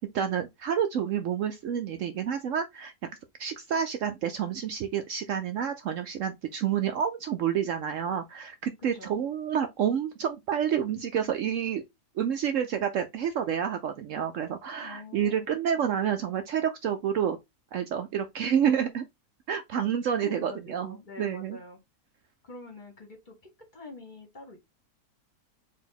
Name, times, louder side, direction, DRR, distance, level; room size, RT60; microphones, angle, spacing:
voice 1, 0.0-2.9 3.4-11.8 12.2-17.4 17.7-19.0 19.5-21.6, right 8 dB, 65° right, 0.8 m, -29 dB
voice 2, 8.8-9.2 14.8-15.5 20.2-21.8 22.4-23.3 23.7-24.6, left 2 dB, 35° left, 1.3 m, -45 dB
4.3 x 2.8 x 3.9 m
omnidirectional pair, 1.6 m